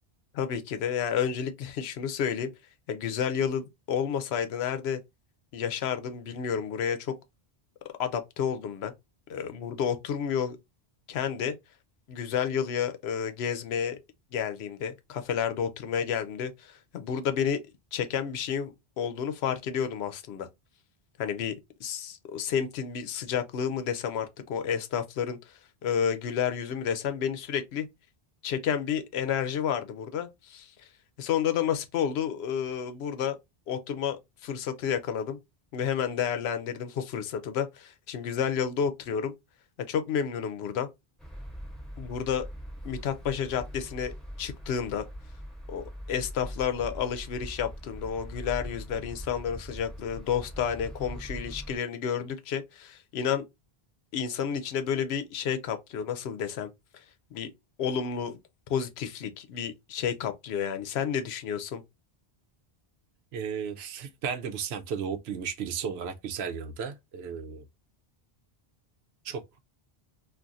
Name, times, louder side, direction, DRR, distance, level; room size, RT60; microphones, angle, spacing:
voice 1, 0.3-2.5 2.9-5.0 5.5-7.1 8.0-8.9 9.3-10.6 11.1-11.5 12.1-14.0 14.3-17.6 17.9-20.5 21.2-21.5 21.8-25.4 25.8-27.9 28.4-30.7 31.2-33.4 33.7-35.4 35.7-39.3 39.9-40.9 42.0-42.4 42.8-45.0 45.7-53.4 54.1-56.7 57.3-57.5 57.8-58.4 58.7-61.8, left 8 dB, 85° left, 0.8 m, -30 dB
sound 1, 41.2-51.8, equal, ahead, 0.9 m, -42 dB
voice 2, 63.3-67.7 69.2-69.4, right 7 dB, 80° right, 0.8 m, -34 dB
2.5 x 2.4 x 3.9 m
omnidirectional pair, 1.0 m